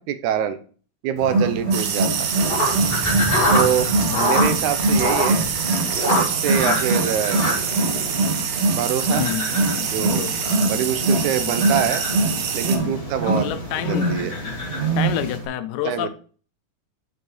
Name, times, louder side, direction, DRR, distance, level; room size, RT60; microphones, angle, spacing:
voice 1, 0.1-0.6 1.0-2.3 3.5-5.5 6.1-7.4 8.7-9.2 9.9-10.3 10.7-12.0 12.5-13.5 13.8-14.4 15.8-16.1, right 9 dB, 80° right, 2.2 m, -25 dB
Wild animals, 1.2-15.5, right 2 dB, 25° right, 1.8 m, -24 dB
sound 1, 1.7-12.8, right 7 dB, 65° right, 1.9 m, -26 dB
sound 2, 2.3-15.4, equal, 20° left, 2.2 m, -27 dB
voice 2, 9.2-9.5 9.8-10.8 11.4-11.6 12.8-12.9 13.2-14.5 15.0-16.1, left 11 dB, 80° left, 2.0 m, -29 dB
8.2 x 6.7 x 3.1 m
omnidirectional pair, 3.4 m